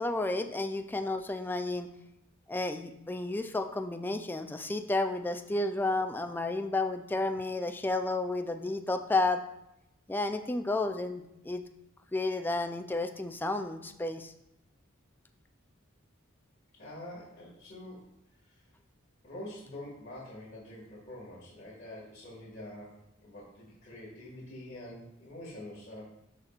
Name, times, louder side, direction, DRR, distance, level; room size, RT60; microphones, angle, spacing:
voice 1, 0.0-1.9 2.5-9.4 10.1-11.6 12.1-14.3, left 2 dB, 10° left, 6 dB, 0.4 m, -31 dB
voice 2, 16.8-18.1 18.4-18.6 19.2-26.0, left 1 dB, 40° left, -9 dB, 1.9 m, -46 dB
12.5 x 4.4 x 2.4 m, 0.84 s
head